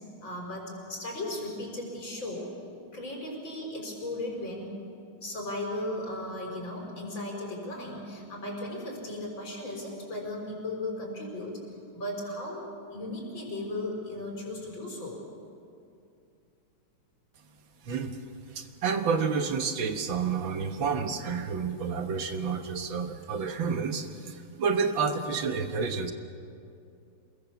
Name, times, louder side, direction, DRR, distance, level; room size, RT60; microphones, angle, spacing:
voice 1, 0.2-2.5 2.9-4.7 5.2-11.6 11.9-15.2, left 1 dB, 60° left, 0 dB, 5.7 m, -36 dB
voice 2, 17.9-18.2 18.5-26.1, right 5 dB, 65° right, 7 dB, 2.0 m, -29 dB
27.5 x 22.0 x 7.1 m, 2.6 s
omnidirectional pair, 2.4 m